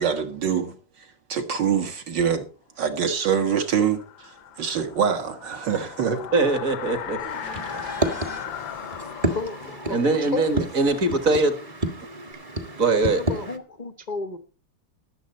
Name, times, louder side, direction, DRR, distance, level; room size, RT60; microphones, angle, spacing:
voice 1, 0.0-2.5 2.8-6.3, right 7 dB, 55° right, 2.1 m, -25 dB
sound 1, 2.9-11.8, left 9 dB, 65° left, 1.5 m, -38 dB
voice 2, 6.3-7.9 9.9-11.6 12.8-13.2, right 3 dB, 40° right, 1.8 m, -22 dB
sound 2, 7.2-8.5 12.3-12.4, right 5 dB, 90° right, 3.4 m, -43 dB
sound 3, 7.3-13.6, right 1 dB, 20° right, 1.1 m, -31 dB
voice 3, 9.3-10.6 13.1-14.4, left 3 dB, 35° left, 0.7 m, -32 dB
19.5 x 7.6 x 4.2 m
omnidirectional pair, 2.4 m